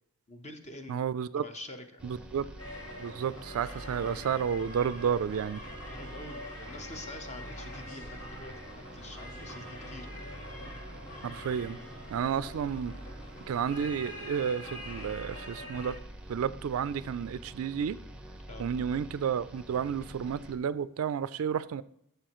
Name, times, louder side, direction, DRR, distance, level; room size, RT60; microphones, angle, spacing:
voice 1, 0.3-1.0 1.4-2.0 5.9-10.1 18.5-18.7, left 2 dB, 30° left, 0.9 m, -46 dB
voice 2, 0.9-1.4 2.0-2.4 3.0-5.6 11.2-11.8 12.1-12.9 13.5-16.0 16.3-18.0 18.6-21.8, right 7 dB, 65° right, 0.3 m, -31 dB
sound 1, 2.0-20.6, right 1 dB, 5° right, 0.7 m, -47 dB
sound 2, 2.6-15.9, left 1 dB, 70° left, 2.4 m, -45 dB
12.5 x 6.7 x 3.0 m
head